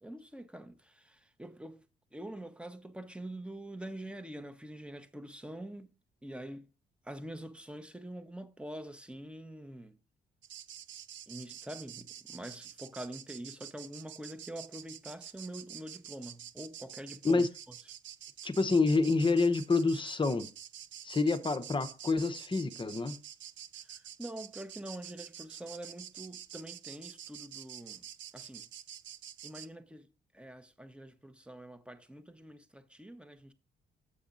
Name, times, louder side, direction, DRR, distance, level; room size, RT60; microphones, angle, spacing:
voice 1, 0.0-1.8 2.1-5.9 6.2-6.7 7.0-10.0 11.3-17.7 23.8-28.0 28.3-28.7 29.4-30.1 30.3-33.5, right 1 dB, 5° right, 0.9 m, -45 dB
sound 1, 10.4-29.7, right 10 dB, 70° right, 0.6 m, -48 dB
voice 2, 18.4-20.5 21.0-23.2, left 3 dB, 25° left, 0.9 m, -28 dB
7.0 x 6.9 x 3.9 m
cardioid pair, 90°, 20 cm